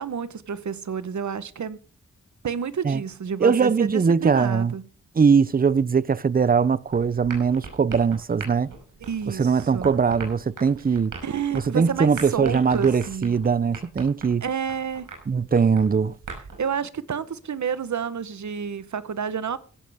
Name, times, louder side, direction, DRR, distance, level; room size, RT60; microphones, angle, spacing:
voice 1, 0.0-1.8 2.4-4.9 9.0-9.9 11.2-13.4 14.4-15.1 16.6-19.6, right 7 dB, 65° right, 1.1 m, -30 dB
voice 2, 3.4-4.8 5.2-8.7 9.3-11.1 11.5-14.4 15.3-16.2, right 5 dB, 30° right, 0.5 m, -21 dB
sound 1, 6.9-16.7, right 4 dB, 85° right, 5.4 m, -41 dB
16.0 x 13.5 x 3.5 m
wide cardioid pair, 80°, 31 cm